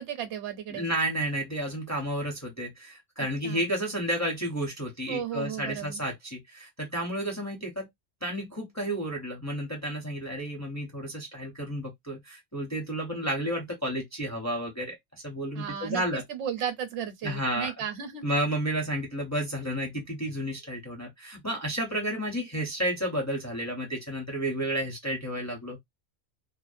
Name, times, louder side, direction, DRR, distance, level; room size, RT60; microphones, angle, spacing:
voice 1, 0.0-0.9 3.2-3.7 5.1-6.0 15.5-18.2, right 9 dB, 70° right, 0.9 m, -35 dB
voice 2, 0.7-7.9 8.2-16.2 17.2-17.7 18.2-25.8, right 1 dB, 20° left, 0.5 m, -31 dB
2.5 x 2.0 x 2.5 m
omnidirectional pair, 1.3 m